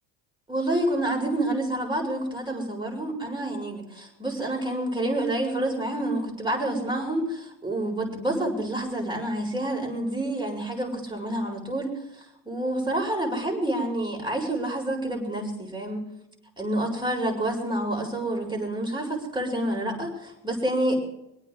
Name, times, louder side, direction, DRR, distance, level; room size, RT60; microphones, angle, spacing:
voice 1, 0.5-12.0 12.5-16.1 16.6-20.9, right 1 dB, 10° right, -1 dB, 7.0 m, -28 dB
26.5 x 8.9 x 3.9 m, 0.81 s
supercardioid pair, 80°, 48 cm